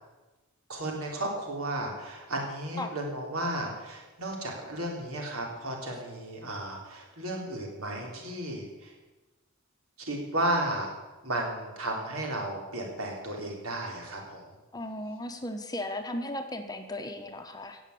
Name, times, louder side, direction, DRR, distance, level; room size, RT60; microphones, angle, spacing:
voice 1, 0.7-8.9 10.0-10.9 11.2-14.4, right 1 dB, 75° right, 0 dB, 3.7 m, -33 dB
voice 2, 14.7-17.8, left 1 dB, 20° left, 6 dB, 1.0 m, -36 dB
16.5 x 7.2 x 8.4 m, 1.2 s
head